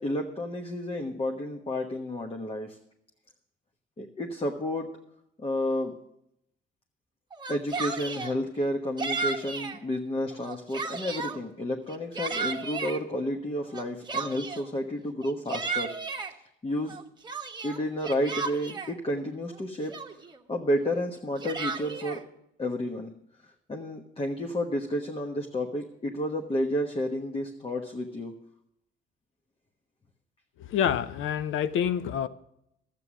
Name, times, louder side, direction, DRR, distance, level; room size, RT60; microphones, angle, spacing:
voice 1, 0.0-2.8 4.0-4.9 5.4-5.9 7.5-15.9 16.6-17.0 17.6-20.0 20.5-22.2 22.6-23.1 23.4-28.3, left 1 dB, 30° left, 2 dB, 1.2 m, -31 dB
Yell, 7.3-8.3 9.0-9.8 10.3-11.4 11.9-13.0 13.7-14.7 15.2-16.3 16.9-18.9 19.5-19.6 19.9-20.4 21.1-22.2, right 4 dB, 20° right, 1.2 m, -34 dB
voice 2, 30.6-32.3, left 9 dB, 80° left, 14 dB, 0.7 m, -27 dB
12.5 x 8.5 x 6.2 m, 0.78 s
cardioid pair, 90°, 20 cm